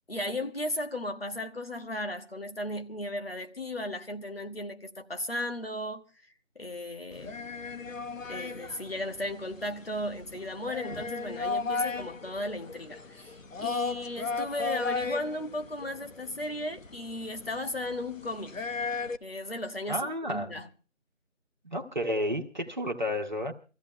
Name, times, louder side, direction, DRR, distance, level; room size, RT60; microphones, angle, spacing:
voice 1, 0.1-6.0 6.5-7.4 8.3-18.6 19.2-20.7, left 1 dB, 50° left, 1.4 m, -35 dB
sound 1, 7.1-19.2, left 4 dB, 85° left, 1.0 m, -36 dB
voice 2, 19.9-20.5 21.6-23.5, equal, 35° right, 1.3 m, -31 dB
26.0 x 15.0 x 2.2 m
figure-of-eight pair, 180°, 38 cm